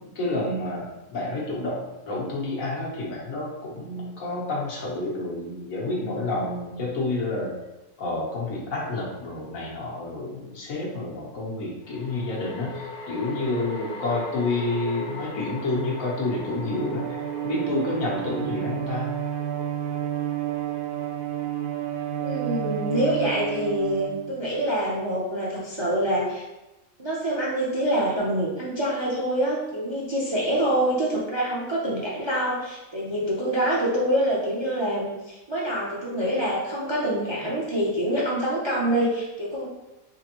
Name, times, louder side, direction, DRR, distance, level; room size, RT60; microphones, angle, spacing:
voice 1, 0.0-7.5 8.0-19.1, left 2 dB, 85° left, -4 dB, 1.4 m, -29 dB
sound 1, 8.9-9.0 11.8-23.2, left 2 dB, 70° left, 0.8 m, -40 dB
Bowed string instrument, 16.3-24.7, right 10 dB, 85° right, 1.0 m, -31 dB
voice 2, 22.2-26.4 27.0-39.7, right 1 dB, 35° right, -5 dB, 0.4 m, -26 dB
3.7 x 3.3 x 2.9 m, 1.0 s
omnidirectional pair, 1.4 m